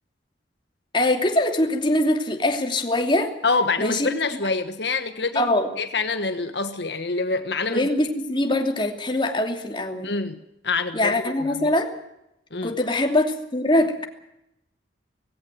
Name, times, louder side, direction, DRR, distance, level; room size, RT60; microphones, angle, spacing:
voice 1, 0.9-3.3 3.8-4.1 5.3-5.7 7.7-10.1 10.9-11.9 12.6-14.0, left 1 dB, 25° left, 4 dB, 2.8 m, -23 dB
voice 2, 3.4-5.5 5.8-7.9 10.0-11.7 12.5-12.8, left 3 dB, 70° left, 8 dB, 1.4 m, -26 dB
19.0 x 16.5 x 9.4 m, 0.84 s
head